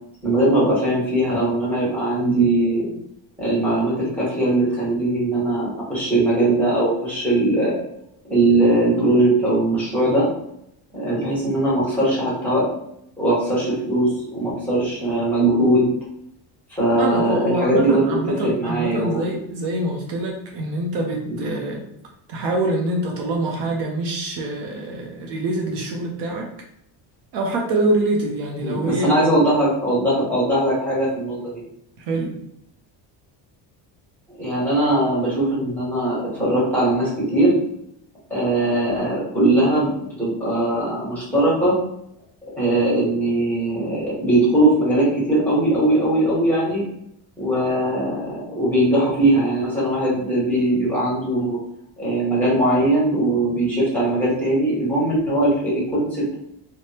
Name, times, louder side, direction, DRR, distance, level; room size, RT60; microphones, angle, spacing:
voice 1, 0.2-2.9 3.4-7.7 8.3-10.3 10.9-12.7 13.2-15.9 16.7-18.2 18.4-19.2 21.2-21.4 28.6-31.4 34.4-37.5 38.3-41.7 42.6-46.8 47.4-51.6 52.0-56.4, right 1 dB, 5° left, -6 dB, 1.4 m, -20 dB
voice 2, 17.0-21.8 22.3-26.5 27.3-29.2 32.0-32.4, right 1 dB, 60° right, 0 dB, 0.6 m, -25 dB
3.2 x 2.1 x 2.8 m, 0.77 s
cardioid pair, 130°, 46 cm